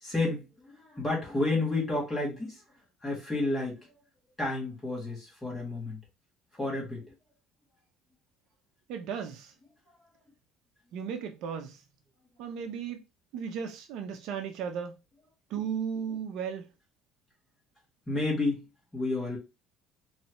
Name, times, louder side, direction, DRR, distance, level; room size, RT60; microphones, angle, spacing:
voice 1, 0.0-2.6 3.0-3.9 4.4-6.0 6.5-7.1 18.1-18.6 18.9-19.4, left 2 dB, 10° left, 2.1 m, -31 dB
voice 2, 8.9-9.5 10.9-11.8 12.4-13.0 13.3-14.9 15.5-16.7, right 7 dB, 60° right, 0.7 m, -35 dB
4.4 x 3.2 x 3.0 m
cardioid pair, 170°, 0 cm